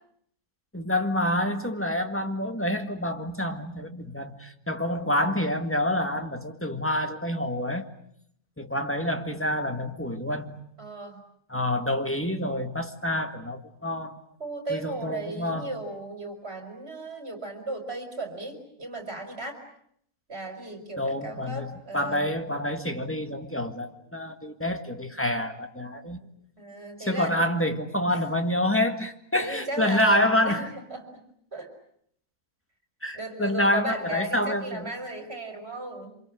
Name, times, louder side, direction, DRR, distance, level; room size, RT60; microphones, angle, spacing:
voice 1, 0.7-7.9 8.6-10.6 11.5-14.2 14.7-15.7 21.0-26.2 27.1-30.7 33.0-34.9, left 1 dB, 10° left, 1.9 m, -27 dB
voice 2, 10.8-11.2 14.4-19.6 20.3-22.3 26.6-27.4 28.1-28.2 29.4-31.2 31.5-31.7 33.1-36.2, right 2 dB, 45° right, 5.3 m, -36 dB
27.5 x 26.0 x 7.8 m
omnidirectional pair, 1.6 m